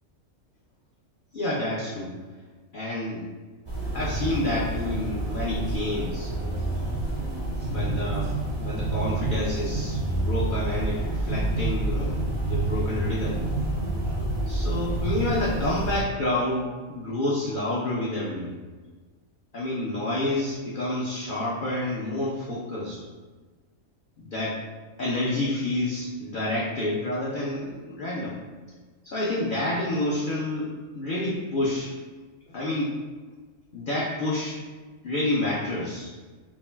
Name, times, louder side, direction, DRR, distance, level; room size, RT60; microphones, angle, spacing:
voice 1, 1.3-2.1 2.7-3.2 3.9-6.6 7.7-8.3 8.6-13.4 14.5-18.6 19.5-23.0 24.2-24.6 25.0-28.4 29.0-31.9 32.5-32.9 33.7-34.6 35.0-36.1, left 1 dB, 70° left, -5 dB, 0.4 m, -29 dB
sound 1, 3.7-16.0, right 2 dB, 40° right, 0.3 m, -28 dB
2.6 x 2.2 x 3.2 m, 1.4 s
omnidirectional pair, 1.4 m